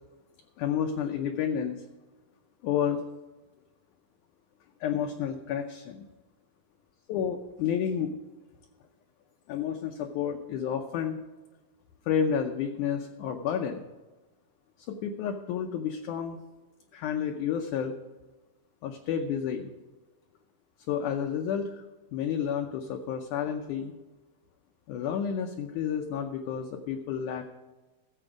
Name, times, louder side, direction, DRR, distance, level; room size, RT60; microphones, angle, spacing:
voice 1, 0.6-1.8 2.6-3.0 4.8-6.1 7.1-8.2 9.5-11.2 12.1-13.9 14.9-16.4 16.9-18.0 18.8-19.7 20.9-21.9 22.1-23.9 24.9-27.4, left 8 dB, 75° left, 4 dB, 1.9 m, -30 dB
14.0 x 7.7 x 4.9 m, 1.2 s
omnidirectional pair, 4.3 m